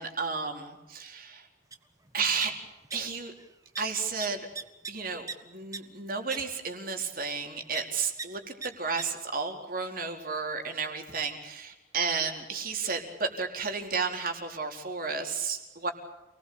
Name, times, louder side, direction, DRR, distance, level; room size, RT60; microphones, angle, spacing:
voice 1, 0.0-1.5 2.1-2.5 2.9-3.3 3.8-4.5 4.9-15.9, right 5 dB, 45° right, 3 dB, 4.4 m, -32 dB
sound 1, 1.7-1.8 2.1-3.0 3.2-3.5 3.8-3.9 4.2-5.4 5.7-5.8 6.3-6.4 7.7-7.8 8.2-8.3 8.6-8.7 9.0-9.1, right 4 dB, 15° right, 1.4 m, -38 dB
29.0 x 20.5 x 8.7 m, 1.0 s
head